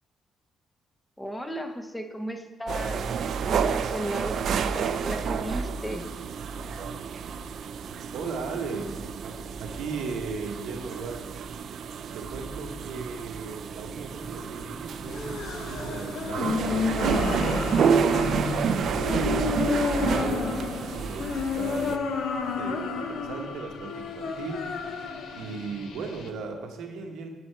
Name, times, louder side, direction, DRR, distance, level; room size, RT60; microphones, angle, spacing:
voice 1, 1.2-3.0 3.4-6.0, equal, 10° left, 6 dB, 0.6 m, -35 dB
sound 1, 2.7-22.0, right 6 dB, 65° right, 0.3 m, -30 dB
voice 2, 8.1-9.0 9.2-11.3 12.1-18.2 18.6-22.0 22.4-25.0 25.3-27.3, right 4 dB, 80° right, 3 dB, 0.9 m, -37 dB
sound 2, 15.1-26.3, left 5 dB, 75° left, 0.7 m, -31 dB
8.2 x 4.2 x 4.4 m, 1.2 s
cardioid pair, 90°, 0 cm